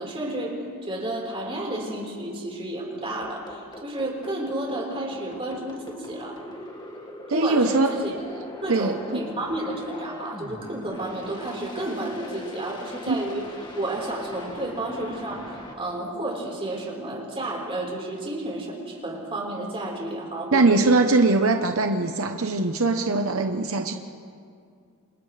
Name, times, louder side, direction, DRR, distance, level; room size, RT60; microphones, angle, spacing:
voice 1, 0.0-6.4 7.3-8.1 8.6-13.5 13.7-20.9, right 1 dB, 25° right, -2 dB, 4.5 m, -31 dB
sound 1, 3.2-15.7, left 1 dB, 20° left, 1.9 m, -41 dB
voice 2, 7.3-8.0 8.7-9.2 13.1-13.2 20.5-23.9, right 3 dB, 75° right, 5 dB, 1.0 m, -21 dB
28.0 x 27.5 x 3.4 m, 2.2 s
head